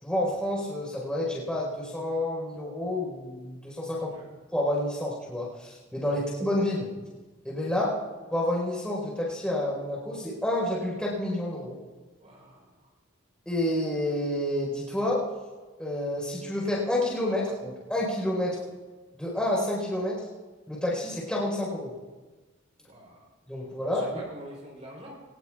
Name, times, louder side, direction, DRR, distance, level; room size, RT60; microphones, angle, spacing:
voice 1, 0.0-4.1 4.5-6.9 7.4-8.0 8.3-11.8 13.5-15.2 15.8-18.6 19.1-20.3 20.7-21.9 23.5-24.1, left 1 dB, 5° left, -4 dB, 4.4 m, -29 dB
voice 2, 12.2-12.9 22.9-23.2 23.9-25.1, equal, 35° right, -3 dB, 4.1 m, -46 dB
22.5 x 19.5 x 2.5 m, 1.3 s
head